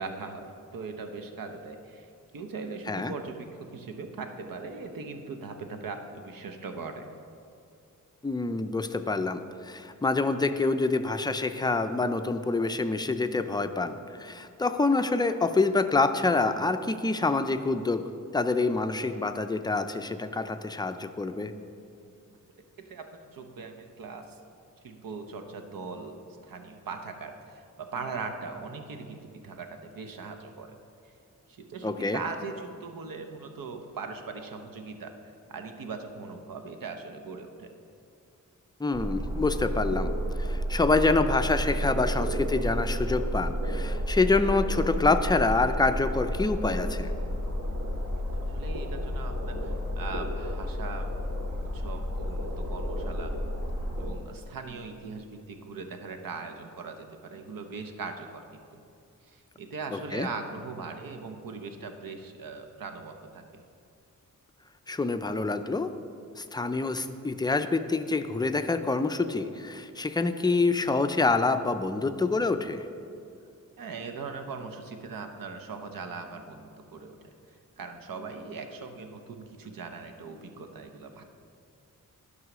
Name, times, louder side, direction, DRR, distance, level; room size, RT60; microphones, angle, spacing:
voice 1, 0.0-2.1 2.3-7.1 22.8-24.4 24.8-30.8 31.5-35.1 35.5-37.7 48.5-51.1 51.7-53.3 54.0-58.8 59.2-63.6 73.8-77.2 77.8-81.2, right 4 dB, 80° right, 6 dB, 0.9 m, -40 dB
voice 2, 8.2-18.0 18.3-21.5 31.8-32.2 38.8-40.1 40.4-47.1 59.9-60.3 64.9-65.9 66.4-72.8, left 3 dB, 15° left, 8 dB, 0.3 m, -26 dB
sound 1, 38.9-54.1, equal, 65° right, 1.8 m, -31 dB
11.0 x 5.5 x 6.0 m, 2.5 s
wide cardioid pair, 140°, 33 cm